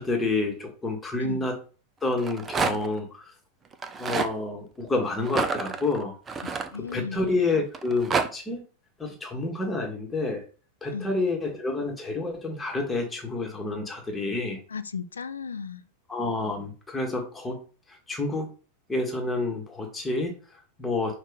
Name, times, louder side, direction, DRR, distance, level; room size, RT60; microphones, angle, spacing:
voice 1, 0.0-1.6 2.0-3.3 4.0-6.1 6.9-8.6 9.0-10.4 10.8-14.6 16.1-18.5 18.9-21.2, left 2 dB, 10° left, 1.3 m, -29 dB
Rattle, 2.1-3.0 3.7-4.3 5.2-7.2 7.7-8.3, right 5 dB, 20° right, 0.5 m, -28 dB
voice 2, 6.5-7.3 10.9-11.1 14.7-15.8, left 6 dB, 70° left, 0.3 m, -35 dB
5.4 x 2.4 x 3.9 m
figure-of-eight pair, 90°, 0 cm